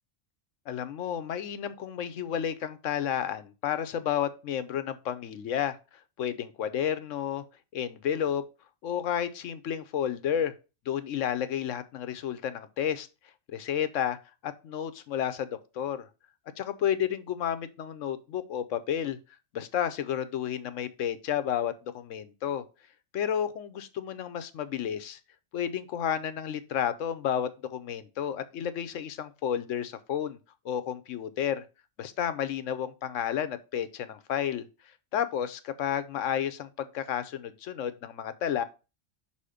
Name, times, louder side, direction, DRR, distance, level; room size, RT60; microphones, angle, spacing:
voice 1, 0.7-5.8 6.2-7.4 7.7-8.4 8.8-10.5 10.9-13.1 13.5-14.2 14.4-16.1 16.6-19.2 19.5-22.6 23.1-25.2 25.5-30.4 30.6-31.6 32.0-34.7 35.1-38.6, left 9 dB, 90° left, 1.1 m, -31 dB
5.6 x 4.2 x 4.9 m
omnidirectional pair, 1.3 m